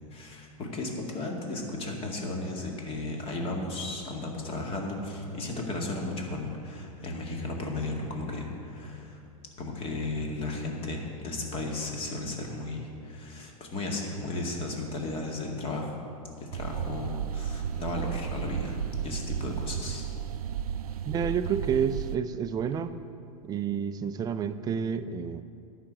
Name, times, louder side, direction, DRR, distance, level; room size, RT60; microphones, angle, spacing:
voice 1, 0.1-9.2 9.6-16.0 16.4-20.1 20.9-21.0, left 2 dB, 30° left, 1 dB, 2.1 m, -35 dB
sound 1, 16.5-22.2, right 8 dB, 90° right, 0.4 m, -33 dB
voice 2, 21.1-22.9 23.4-25.4, right 7 dB, 20° right, 11 dB, 0.4 m, -29 dB
11.0 x 5.9 x 8.7 m, 2.5 s
hypercardioid pair, 120°, 19 cm